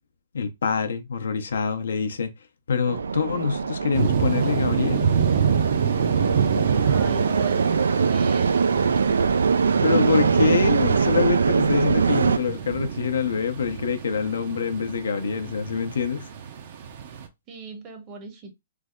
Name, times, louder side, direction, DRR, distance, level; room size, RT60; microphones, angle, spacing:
voice 1, 0.3-2.3 2.7-5.1 9.8-16.3, left 6 dB, 80° left, 0.6 m, -25 dB
sound 1, 2.9-12.4, right 5 dB, 85° right, 0.3 m, -22 dB
sound 2, 3.9-17.3, right 7 dB, 55° right, 0.7 m, -28 dB
voice 2, 6.8-8.6 17.5-18.5, right 5 dB, 30° right, 0.9 m, -37 dB
3.3 x 2.0 x 3.6 m
hypercardioid pair, 140°, 0 cm